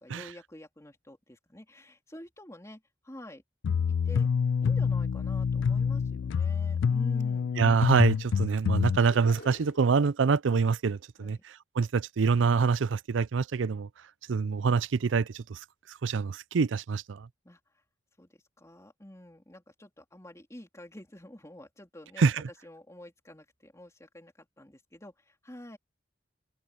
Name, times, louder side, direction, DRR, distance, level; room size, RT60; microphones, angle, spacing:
voice 1, 0.0-3.4 4.0-4.3 4.6-7.6 11.2-11.4 17.4-17.8 18.2-22.3 22.6-25.8, left 1 dB, 15° left, 3.5 m, -48 dB
sound 1, 3.6-9.0, left 6 dB, 85° left, 0.3 m, -27 dB
voice 2, 7.6-11.4 11.8-13.9 14.3-15.6 16.0-17.3 22.2-22.4, right 5 dB, 85° right, 0.5 m, -25 dB
sound 2, 9.1-10.0, left 1 dB, 60° left, 3.4 m, -46 dB
head